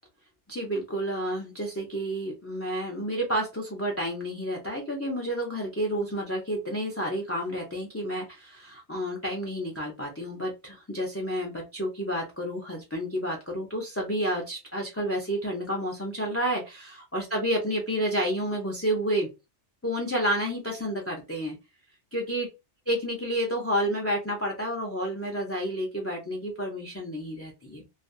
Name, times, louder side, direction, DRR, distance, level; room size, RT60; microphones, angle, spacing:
voice 1, 0.5-19.3 19.8-21.6 22.1-22.5 22.9-27.8, equal, 25° left, 0 dB, 0.3 m, -30 dB
2.4 x 2.2 x 2.5 m, 0.25 s
omnidirectional pair, 1.2 m